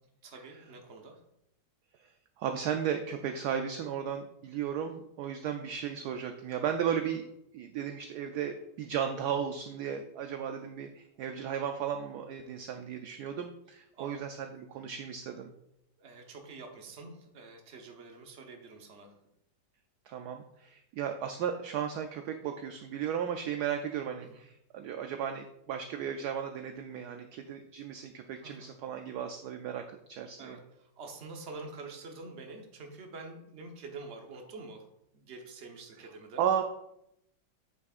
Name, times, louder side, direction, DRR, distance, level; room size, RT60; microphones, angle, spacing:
voice 1, 0.2-1.2 13.9-14.1 16.0-19.1 24.2-24.4 28.4-28.7 30.4-34.9 35.1-36.6, right 3 dB, 45° right, 3 dB, 1.1 m, -47 dB
voice 2, 2.4-7.2 7.5-15.5 20.1-29.8 30.1-30.6 36.4-36.6, right 8 dB, 70° right, 5 dB, 1.0 m, -35 dB
8.4 x 6.6 x 2.4 m, 0.80 s
omnidirectional pair, 2.0 m